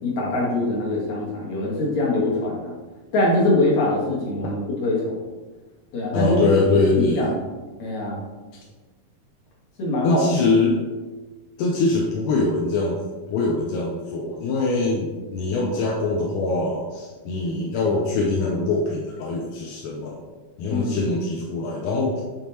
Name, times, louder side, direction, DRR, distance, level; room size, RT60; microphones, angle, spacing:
voice 1, 0.0-2.7 3.1-5.2 5.9-6.4 6.9-7.4 7.8-8.2 9.8-10.2 20.7-20.9, left 2 dB, 60° left, -4 dB, 2.6 m, -23 dB
voice 2, 6.1-7.3 10.0-10.8 11.6-13.0 13.3-20.2 20.6-22.2, left 3 dB, 80° left, -1 dB, 2.0 m, -23 dB
9.3 x 3.6 x 2.9 m, 1.3 s
omnidirectional pair, 3.7 m